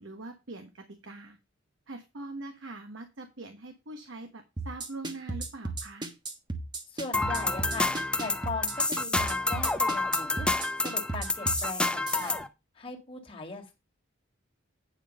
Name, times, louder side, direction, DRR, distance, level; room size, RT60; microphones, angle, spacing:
voice 1, 0.0-1.4 1.9-6.1, right 2 dB, 70° right, 6 dB, 1.2 m, -43 dB
sound 1, 4.6-12.3, right 2 dB, 20° right, 1.3 m, -34 dB
voice 2, 6.9-7.9 8.2-12.5 12.8-13.7, left 3 dB, 25° left, 1 dB, 2.0 m, -39 dB
sound 2, 7.1-12.5, left 2 dB, 5° left, 0.6 m, -29 dB
9.5 x 5.3 x 5.3 m, 0.25 s
head